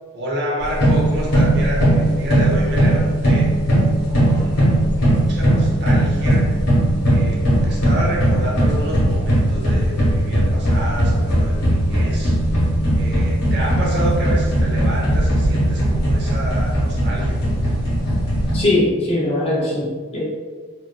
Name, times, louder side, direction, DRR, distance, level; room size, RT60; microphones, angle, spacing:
voice 1, 0.1-3.5 4.1-6.4 7.1-12.4 12.9-17.4, right 1 dB, 50° right, -4 dB, 0.7 m, -29 dB
sound 1, 0.6-18.6, right 1 dB, 75° left, 1.3 m, -18 dB
voice 2, 18.5-20.2, left 1 dB, 25° left, -3 dB, 0.4 m, -20 dB
3.0 x 2.5 x 2.2 m, 1.5 s
head